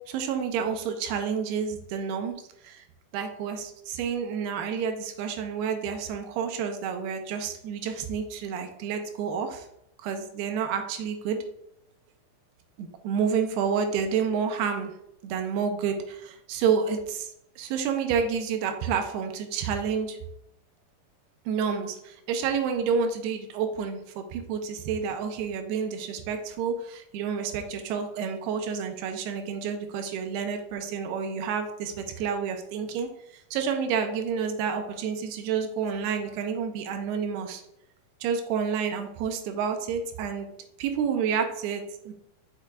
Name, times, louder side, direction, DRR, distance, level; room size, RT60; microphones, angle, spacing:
voice 1, 0.1-2.4 2.6-2.8 3.1-9.7 10.0-11.4 12.8-14.9 15.2-20.2 21.5-37.6 38.2-40.5 40.8-42.1, right 6 dB, 85° right, 6 dB, 2.7 m, -29 dB
6.6 x 6.0 x 2.3 m, 0.77 s
omnidirectional pair, 4.6 m